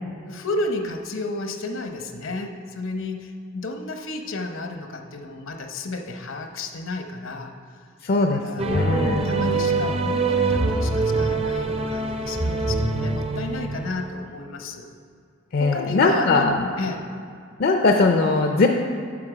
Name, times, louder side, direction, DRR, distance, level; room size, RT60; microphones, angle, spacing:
voice 1, 0.0-7.5 8.2-8.7 8.9-14.9 15.6-17.0, left 2 dB, 70° left, 4 dB, 0.8 m, -32 dB
voice 2, 8.0-9.2 15.5-16.7 17.6-18.7, left 3 dB, 50° left, 3 dB, 0.5 m, -20 dB
sound 1, 8.6-14.1, right 3 dB, 30° right, 0.5 m, -24 dB
8.6 x 6.2 x 5.0 m, 2.4 s
head